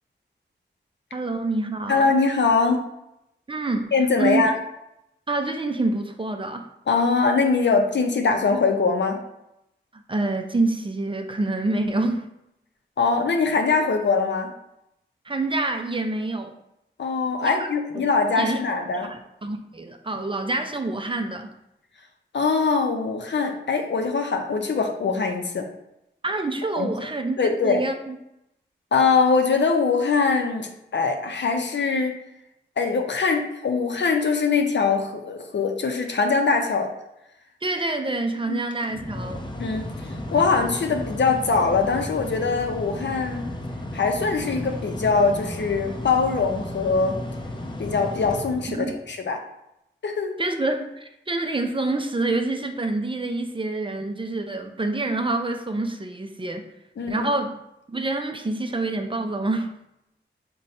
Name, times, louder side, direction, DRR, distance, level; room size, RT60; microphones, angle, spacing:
voice 1, 1.1-2.1 3.5-4.5 5.3-6.7 9.9-12.3 15.2-16.5 17.4-17.7 17.9-18.1 18.4-18.6 19.0-21.5 26.2-28.2 37.6-39.4 48.7-49.0 50.4-56.7 57.1-57.6 57.9-59.8, right 2 dB, 25° right, 5 dB, 0.5 m, -27 dB
voice 2, 1.9-2.8 3.9-4.5 6.9-9.2 13.0-14.5 17.0-19.1 22.3-25.7 26.8-26.9 27.4-27.8 28.9-32.2 32.8-36.9 38.5-38.6 39.6-43.5 43.9-47.2 47.8-49.4 50.0-50.3 57.0-57.3, left 4 dB, 65° left, 4 dB, 0.6 m, -22 dB
Mechanical fan, 38.6-49.1, left 1 dB, 25° left, 0.6 m, -34 dB
3.9 x 2.2 x 4.2 m, 0.85 s
cardioid pair, 50°, 20 cm